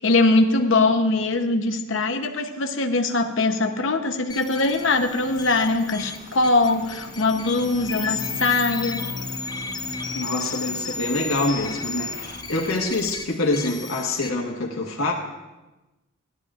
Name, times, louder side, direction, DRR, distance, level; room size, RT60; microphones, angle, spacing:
voice 1, 0.0-9.0, left 3 dB, 65° left, 5 dB, 0.9 m, -22 dB
sound 1, 4.3-14.3, left 5 dB, 20° left, 0.4 m, -34 dB
sound 2, 4.6-12.4, equal, 35° right, 1.2 m, -39 dB
voice 2, 10.1-15.1, left 2 dB, 85° left, -2 dB, 1.5 m, -25 dB
17.5 x 12.0 x 2.5 m, 1.1 s
head